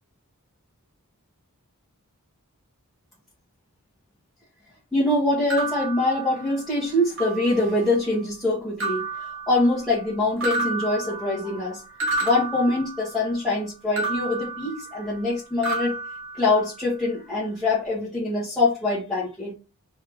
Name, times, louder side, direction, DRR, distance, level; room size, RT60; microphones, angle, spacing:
voice 1, 4.9-9.1 9.5-11.8 12.2-16.0 16.3-19.5, left 2 dB, ahead, 1.6 m, -24 dB
sound 1, 5.5-6.8 7.2-7.9 8.8-10.1 10.4-13.4 14.0-15.3 15.6-17.0, right 3 dB, 60° right, 1.9 m, -31 dB
4.5 x 3.3 x 3.4 m
head